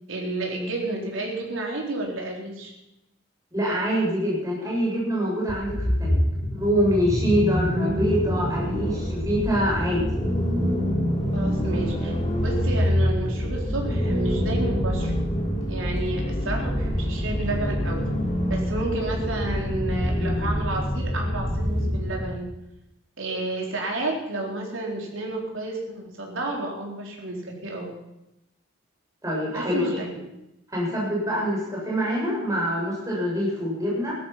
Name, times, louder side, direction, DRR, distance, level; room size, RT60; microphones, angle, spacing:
voice 1, 0.1-2.7 11.3-15.1 15.7-18.0 18.5-22.5 23.2-27.9 29.5-30.3, right 2 dB, 75° right, 0 dB, 4.2 m, -31 dB
voice 2, 3.5-6.2 6.5-10.1 29.2-29.9 30.7-34.2, equal, 15° right, -4 dB, 7.2 m, -25 dB
sound 1, 5.5-22.4, equal, 30° left, 3.7 m, -26 dB
16.5 x 13.0 x 5.9 m, 0.89 s
head